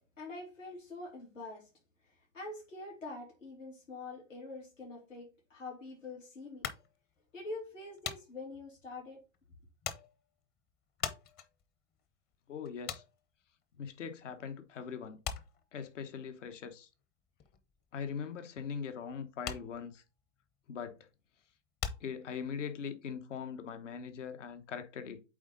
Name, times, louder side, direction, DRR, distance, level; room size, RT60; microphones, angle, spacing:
voice 1, 0.2-1.7 2.0-6.7 7.3-9.2, left 2 dB, 90° left, 2.9 m, -45 dB
sound 1, 6.6-14.5 14.7-22.8, left 7 dB, 25° left, 0.8 m, -44 dB
voice 2, 12.5-13.0 13.8-15.2 15.7-16.9 17.9-20.0 20.7-21.0 22.0-25.2, left 6 dB, 70° left, 1.3 m, -41 dB
8.6 x 3.7 x 3.8 m
hypercardioid pair, 120°, 38 cm